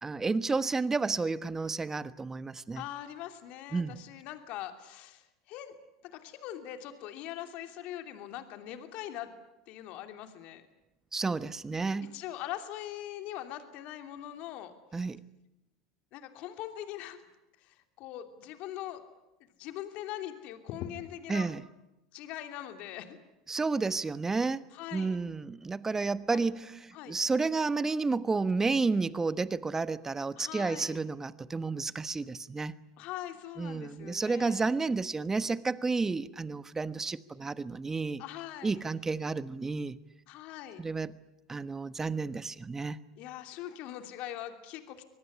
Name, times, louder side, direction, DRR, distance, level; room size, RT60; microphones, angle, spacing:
voice 1, 0.0-2.8 3.7-4.0 11.1-12.1 14.9-15.2 21.3-21.6 23.5-24.6 24.9-32.7 33.6-38.2 38.6-40.0 40.8-41.1 41.5-43.0, right 4 dB, 15° right, 15 dB, 1.2 m, -31 dB
voice 2, 2.8-5.7 6.0-9.3 9.7-10.7 12.0-14.7 16.1-17.2 17.6-19.0 19.6-21.5 22.1-23.2 24.7-25.2 26.3-26.4 26.9-27.1 30.4-31.0 33.0-34.7 38.2-38.8 40.3-40.8 43.2-45.1, left 12 dB, 55° left, 7 dB, 2.9 m, -42 dB
25.0 x 19.5 x 9.8 m, 0.95 s
hypercardioid pair, 90°, 3 cm